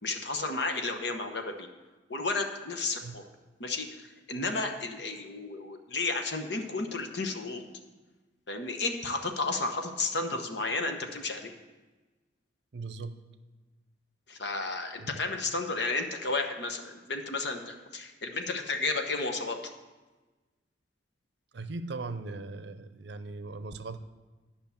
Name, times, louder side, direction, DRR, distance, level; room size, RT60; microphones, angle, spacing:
voice 1, 0.0-1.7 2.1-3.2 3.6-7.6 8.5-11.5 14.3-19.6, left 3 dB, 65° left, 5 dB, 1.0 m, -32 dB
voice 2, 12.7-13.2 15.0-15.1 21.5-24.0, right 3 dB, 65° right, 11 dB, 0.6 m, -39 dB
10.5 x 5.7 x 7.0 m, 1.2 s
head